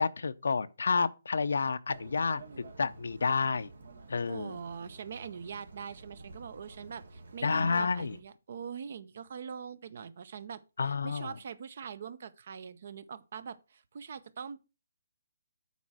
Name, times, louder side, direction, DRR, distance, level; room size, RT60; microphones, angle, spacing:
voice 1, 0.0-3.7 4.1-4.6 7.4-8.2 10.8-11.3, left 4 dB, 80° left, 0.7 m, -30 dB
sound 1, 1.9-8.2, right 3 dB, 80° right, 2.0 m, -51 dB
voice 2, 4.2-14.6, right 6 dB, 50° right, 0.8 m, -43 dB
8.3 x 4.4 x 6.1 m
hypercardioid pair, 165°, 0 cm